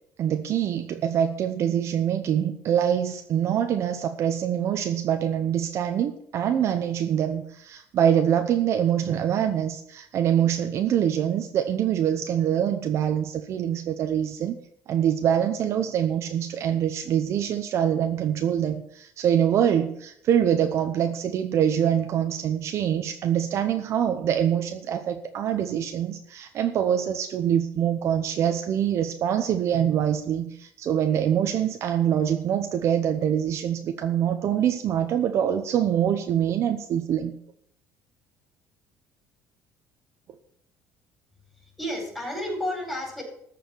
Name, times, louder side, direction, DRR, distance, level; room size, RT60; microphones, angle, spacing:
voice 1, 0.2-14.6 14.9-37.3, right 9 dB, 45° right, 6 dB, 0.8 m, -24 dB
voice 2, 41.5-43.2, left 1 dB, 5° left, 0 dB, 4.9 m, -31 dB
14.0 x 5.1 x 8.5 m, 0.71 s
cardioid pair, 150°, 6 cm